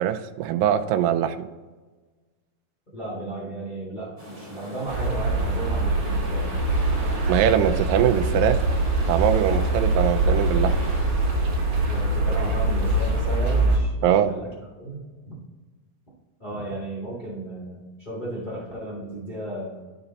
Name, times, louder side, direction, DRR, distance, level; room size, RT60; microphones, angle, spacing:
voice 1, 0.0-1.5 7.3-8.6 9.1-10.8 14.0-14.3, right 10 dB, 80° right, 9 dB, 2.1 m, -22 dB
voice 2, 2.9-6.5 11.9-14.5 14.8-15.3 16.4-19.8, right 1 dB, 85° left, -6 dB, 0.4 m, -34 dB
sound 1, 4.2-13.2, left 1 dB, 5° right, 1.8 m, -40 dB
sound 2, 4.9-13.8, right 2 dB, 50° right, 1.9 m, -23 dB
11.5 x 3.9 x 4.0 m, 1.3 s
omnidirectional pair, 4.2 m